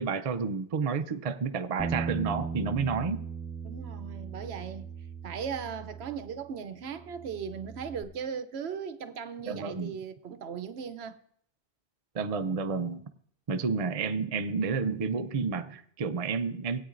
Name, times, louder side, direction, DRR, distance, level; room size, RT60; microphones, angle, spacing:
voice 1, 0.0-3.2 9.4-9.9 12.1-13.0 13.5-16.8, right 5 dB, 45° right, 0.5 m, -30 dB
Bass guitar, 1.8-6.6 6.8-8.0, right 5 dB, 5° right, 1.1 m, -38 dB
voice 2, 3.6-4.8 5.2-11.2, right 7 dB, 65° right, 0.9 m, -38 dB
19.5 x 8.7 x 2.5 m
omnidirectional pair, 1.2 m